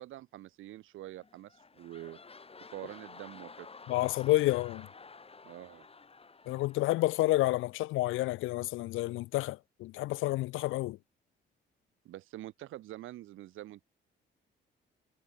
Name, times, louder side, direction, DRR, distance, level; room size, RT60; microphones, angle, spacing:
voice 1, 0.0-2.2 2.6-3.7 5.4-5.9 12.0-13.8, right 15 dB, 85° right, 3.1 m, -46 dB
sound 1, 1.2-7.7 8.2-8.3, left 4 dB, 30° left, 6.3 m, -52 dB
voice 2, 3.9-4.9 6.5-11.0, left 18 dB, 85° left, 0.6 m, -29 dB
cardioid pair, 90°, 20 cm